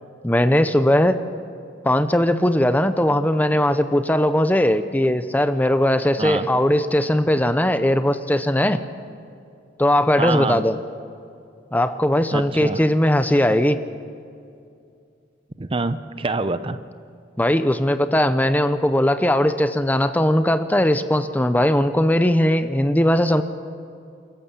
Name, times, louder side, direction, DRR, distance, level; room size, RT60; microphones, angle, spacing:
voice 1, 0.2-1.2 1.8-8.8 9.8-10.8 11.7-13.8 17.4-23.4, left 1 dB, 10° left, 10 dB, 0.7 m, -19 dB
voice 2, 10.1-10.6 12.3-12.8 15.6-16.8, right 3 dB, 30° right, 12 dB, 0.6 m, -25 dB
29.0 x 14.0 x 7.3 m, 2.4 s
head